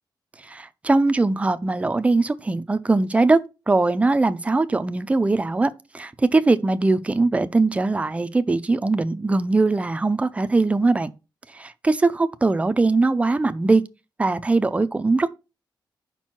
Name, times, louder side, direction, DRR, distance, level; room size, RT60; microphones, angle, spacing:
voice 1, 0.4-3.4 3.7-11.1 11.5-13.8 14.2-15.3, right 3 dB, 15° right, 0.4 m, -21 dB
5.3 x 4.5 x 5.7 m
wide cardioid pair, 160°, 8 cm